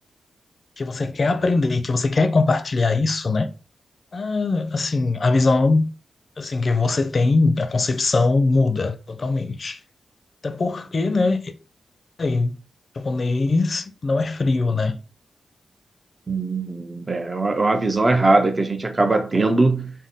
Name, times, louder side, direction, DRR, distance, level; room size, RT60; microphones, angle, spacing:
voice 1, 0.8-3.5 4.1-5.9 6.4-9.8 10.4-11.5 12.2-12.6 13.0-15.0, left 3 dB, 50° left, 0.4 m, -21 dB
voice 2, 16.3-19.9, right 2 dB, 35° right, 0.4 m, -20 dB
2.6 x 2.2 x 3.4 m
cardioid pair, 75°, 0 cm